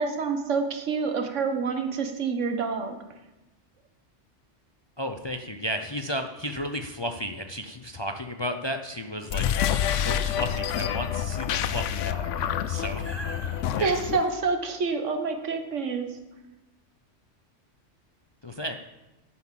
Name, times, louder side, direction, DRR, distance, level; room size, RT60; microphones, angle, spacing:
voice 1, 0.0-2.9 13.8-16.1, right 4 dB, 85° right, 6 dB, 1.5 m, -27 dB
voice 2, 5.0-13.9 18.4-18.7, equal, 30° left, 6 dB, 0.5 m, -34 dB
sound 1, 9.2-14.3, left 9 dB, 90° left, 1.0 m, -28 dB
8.6 x 8.4 x 7.5 m, 1.0 s
omnidirectional pair, 1.2 m